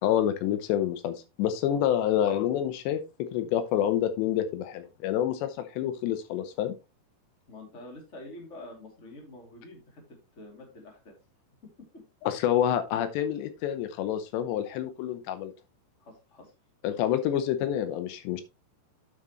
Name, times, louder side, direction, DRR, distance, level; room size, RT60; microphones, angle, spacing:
voice 1, 0.0-6.7 12.2-15.5 16.8-18.4, left 10 dB, 80° left, 10 dB, 3.1 m, -28 dB
voice 2, 7.5-10.0 10.3-11.2 16.0-16.5, left 2 dB, 20° left, 2 dB, 2.6 m, -47 dB
9.5 x 7.6 x 3.1 m, 0.27 s
omnidirectional pair, 5.0 m